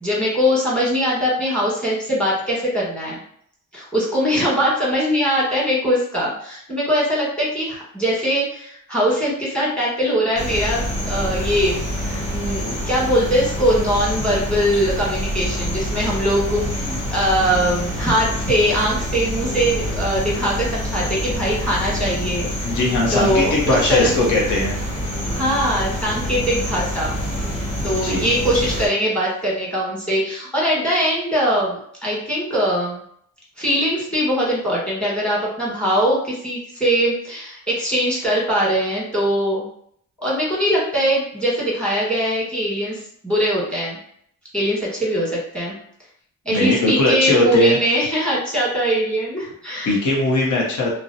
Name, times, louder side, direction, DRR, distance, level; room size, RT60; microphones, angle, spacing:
voice 1, 0.0-3.2 3.7-22.8 23.1-24.1 25.3-27.1 27.8-33.0 33.6-39.7 40.2-44.0 44.5-45.7 46.4-49.9, equal, 5° left, -5 dB, 1.4 m, -21 dB
sound 1, 10.4-28.9, equal, 20° left, 1.0 m, -26 dB
voice 2, 22.6-24.8 27.9-28.3 46.5-47.8 49.8-50.9, left 2 dB, 60° left, -2 dB, 0.8 m, -19 dB
2.5 x 2.0 x 2.6 m, 0.65 s
cardioid pair, 75°, 33 cm